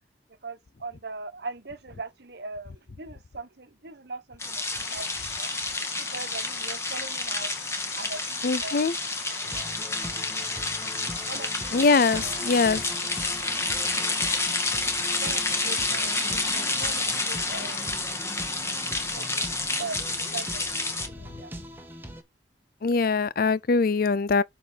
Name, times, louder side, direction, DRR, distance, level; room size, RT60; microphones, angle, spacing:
voice 1, 0.4-9.5 9.7-10.3 10.6-10.7 11.3-12.7 15.2-18.0 19.1-19.4 19.8-20.6 20.9-21.5, right 3 dB, 65° right, 1.2 m, -41 dB
sound 1, 4.4-21.1, left 3 dB, 15° left, 1.6 m, -29 dB
sound 2, 4.8-17.9, left 8 dB, 75° left, 1.0 m, -42 dB
voice 2, 8.4-8.9 11.7-12.8 22.8-24.4, left 4 dB, 55° left, 0.5 m, -22 dB
sound 3, 9.4-22.2, equal, 10° right, 1.5 m, -42 dB
6.6 x 4.6 x 6.7 m
head